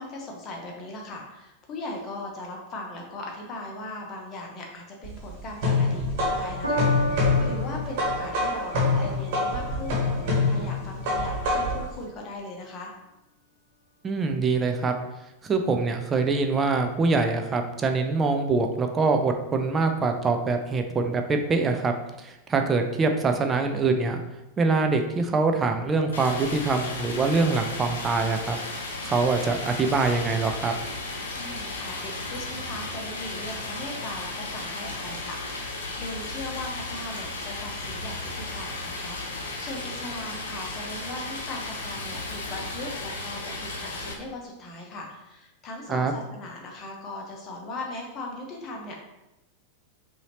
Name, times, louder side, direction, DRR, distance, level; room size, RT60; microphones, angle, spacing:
voice 1, 0.0-12.9 31.4-49.0, left 2 dB, 30° left, 0 dB, 1.0 m, -39 dB
sound 1, 5.0-11.9, left 3 dB, 50° right, 1.4 m, -25 dB
Piano, 6.6-13.2 14.0-14.1, equal, 85° right, 1.0 m, -36 dB
voice 2, 14.0-15.0 15.4-24.2 24.6-28.6 29.0-30.7 45.9-46.1, right 4 dB, 20° right, 5 dB, 0.5 m, -24 dB
Stream, 26.1-44.1, left 2 dB, 65° left, 0.8 m, -35 dB
5.5 x 2.8 x 2.9 m, 0.96 s
figure-of-eight pair, 90°, 0 cm